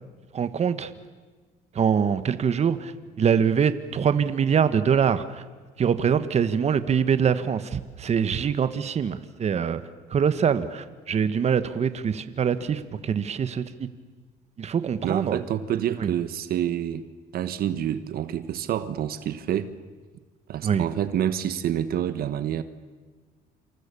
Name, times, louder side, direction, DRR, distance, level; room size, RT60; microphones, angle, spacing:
voice 1, 0.3-0.9 1.7-2.9 3.2-5.4 5.8-9.8 10.1-13.9 14.6-15.4 16.0-16.1 20.6-20.8, right 7 dB, 40° right, 12 dB, 1.5 m, -24 dB
voice 2, 15.0-17.0 17.3-19.7 20.5-22.6, right 10 dB, 65° right, 12 dB, 1.4 m, -27 dB
28.0 x 27.5 x 7.0 m, 1.4 s
cardioid pair, 110°, 17 cm